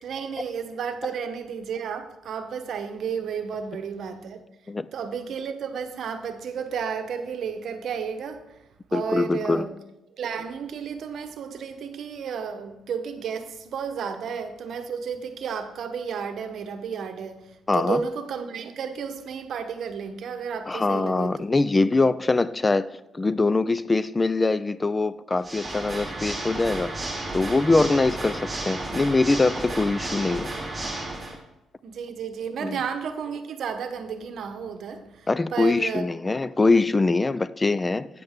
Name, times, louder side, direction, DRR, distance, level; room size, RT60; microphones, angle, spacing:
voice 1, 0.0-4.4 4.9-8.6 8.9-9.7 10.1-21.6 31.8-36.1, right 6 dB, 65° right, 0.9 m, -32 dB
voice 2, 8.9-9.7 17.7-18.0 20.7-22.9 23.1-30.6 32.6-32.8 35.3-38.1, left 3 dB, 20° left, 0.3 m, -23 dB
Water / Mechanisms, 25.4-31.4, right 2 dB, 20° right, 2.3 m, -33 dB
9.1 x 7.7 x 3.6 m
cardioid pair, 90°, 0 cm